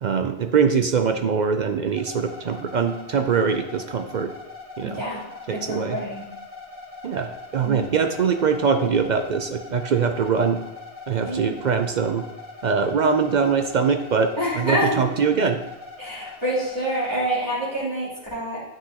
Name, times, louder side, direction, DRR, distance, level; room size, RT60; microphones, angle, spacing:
voice 1, 0.0-4.3 4.8-5.0 5.5-6.0 7.0-10.6 11.1-12.2 12.6-15.6, right 6 dB, 55° right, 6 dB, 0.5 m, -22 dB
sound 1, 1.9-17.2, left 3 dB, 10° right, 2.2 m, -41 dB
voice 2, 4.8-5.2 5.5-6.2 7.6-7.9 10.2-10.5 11.3-11.5 14.4-14.9 16.0-18.6, equal, 25° right, -11 dB, 3.1 m, -27 dB
9.9 x 6.0 x 2.9 m, 0.94 s
omnidirectional pair, 1.1 m